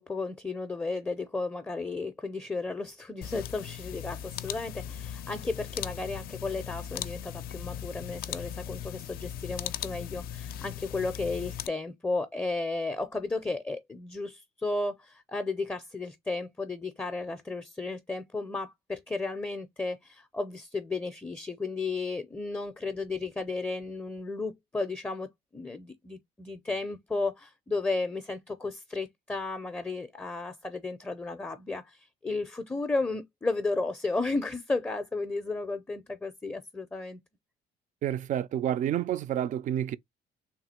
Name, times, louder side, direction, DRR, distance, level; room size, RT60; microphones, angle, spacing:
voice 1, 0.0-37.2, left 3 dB, 10° left, 0.5 m, -34 dB
sound 1, 3.2-11.7, left 10 dB, 65° left, 0.4 m, -38 dB
voice 2, 38.0-40.0, right 11 dB, 50° right, 0.4 m, -29 dB
3.4 x 2.3 x 4.2 m
cardioid pair, 110°, 17 cm